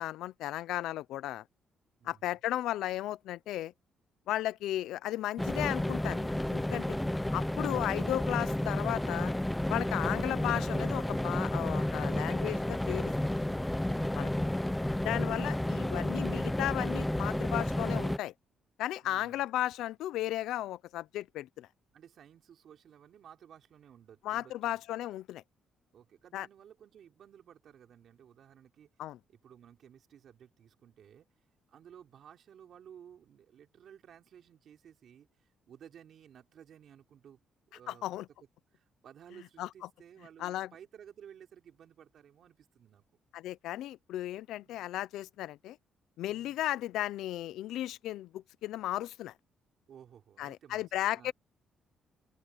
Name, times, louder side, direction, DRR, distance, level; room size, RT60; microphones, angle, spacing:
voice 1, 0.0-1.4 2.0-3.7 4.3-7.0 7.3-9.3 9.7-13.3 14.2-14.3 15.0-18.3 18.8-21.7 24.2-25.4 26.3-26.5 29.0-29.2 37.9-38.3 39.6-39.7 40.4-40.7 43.3-45.8 46.2-49.3 50.4-51.3, left 14 dB, 90° left, 0.7 m, -35 dB
voice 2, 2.0-2.3 19.0-19.4 21.9-24.8 25.9-29.0 29.3-31.4 31.7-37.4 37.7-38.0 38.7-43.1 44.6-44.9 46.3-46.6 49.9-51.3, right 9 dB, 65° right, 3.5 m, -56 dB
sound 1, 5.4-18.2, left 1 dB, 10° left, 0.6 m, -31 dB
open air
cardioid pair, 90°, 0 cm